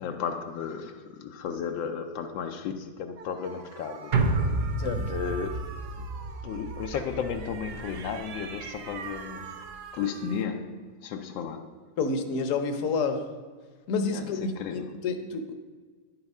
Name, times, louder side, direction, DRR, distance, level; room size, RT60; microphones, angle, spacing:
voice 1, 0.0-4.1 5.1-5.7 6.4-9.6 9.9-11.8 14.1-15.1, left 7 dB, 80° left, 1.4 m, -34 dB
sound 1, 3.2-10.4, right 6 dB, 65° right, 1.3 m, -44 dB
sound 2, 4.1-8.6 8.9-9.0, right 3 dB, 90° right, 0.4 m, -30 dB
voice 2, 12.0-13.2 13.9-15.5, left 4 dB, 55° left, 1.0 m, -29 dB
9.9 x 7.1 x 5.4 m
omnidirectional pair, 2.0 m